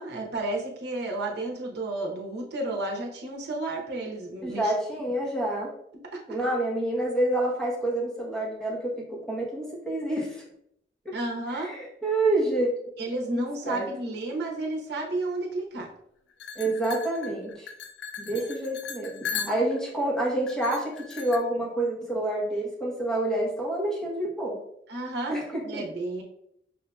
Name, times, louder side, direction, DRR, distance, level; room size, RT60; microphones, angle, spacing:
voice 1, 0.0-4.7 11.1-11.7 13.0-15.9 18.3-18.4 19.3-19.6 24.9-25.4 25.6-26.2, right 2 dB, 65° right, -1 dB, 0.8 m, -32 dB
voice 2, 4.4-5.7 6.3-10.4 11.0-11.2 11.5-12.8 13.1-13.9 16.5-17.7 18.2-24.6 25.3-25.8, right 1 dB, 5° left, -4 dB, 1.0 m, -28 dB
sound 1, 16.4-19.9 20.5-21.4, left 6 dB, 70° left, 0.5 m, -37 dB
5.6 x 2.7 x 2.3 m, 0.75 s
head